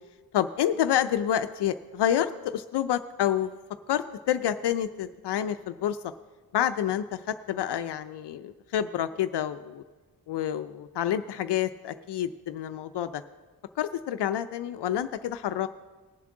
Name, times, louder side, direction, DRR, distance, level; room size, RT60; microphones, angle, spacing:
voice 1, 0.3-3.5 3.9-6.0 6.5-9.8 10.3-13.2 13.8-15.7, left 10 dB, 75° left, 10 dB, 0.5 m, -28 dB
19.0 x 7.1 x 3.8 m, 1.3 s
wide cardioid pair, 140°, 41 cm